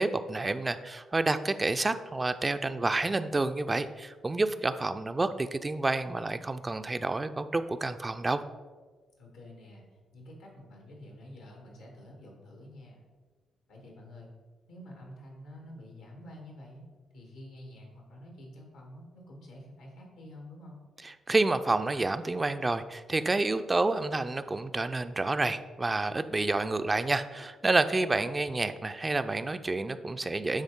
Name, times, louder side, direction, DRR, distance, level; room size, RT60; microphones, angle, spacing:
voice 1, 0.0-8.4 21.3-30.6, right 2 dB, 30° right, 10 dB, 0.4 m, -29 dB
voice 2, 9.2-13.0 13.7-14.3 14.7-16.8 17.1-20.8, left 1 dB, 85° left, 0 dB, 1.8 m, -49 dB
9.8 x 3.8 x 3.7 m, 1.4 s
hypercardioid pair, 45°, 0 cm